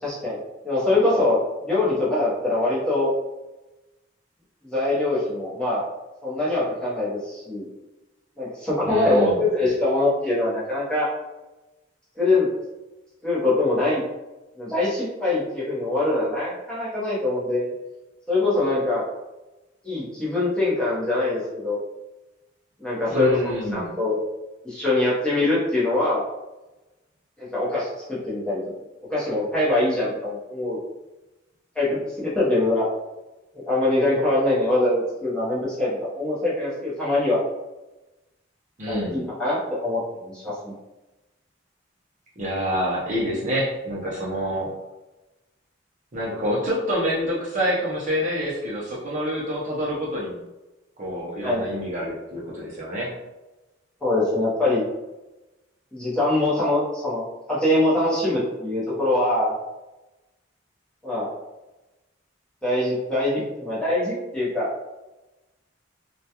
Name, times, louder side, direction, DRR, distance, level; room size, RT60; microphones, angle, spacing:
voice 1, 0.0-0.4 0.6-3.1 4.6-5.8 6.2-7.6 8.4-11.1 12.2-12.5 13.2-14.0 14.6-17.7 18.3-19.0 19.8-21.8 22.8-24.2 24.6-26.2 27.4-28.6 29.1-30.8 31.7-32.9 33.5-37.4 38.9-40.7 51.4-51.8 54.0-54.8 55.9-59.6 61.0-61.3 62.6-64.7, left 2 dB, 5° left, -9 dB, 0.8 m, -23 dB
voice 2, 8.8-9.4 23.1-23.9 38.8-39.2 42.4-44.7 46.1-50.4 51.0-53.1, equal, 40° right, -5 dB, 0.6 m, -27 dB
2.2 x 2.2 x 2.8 m, 1.0 s
head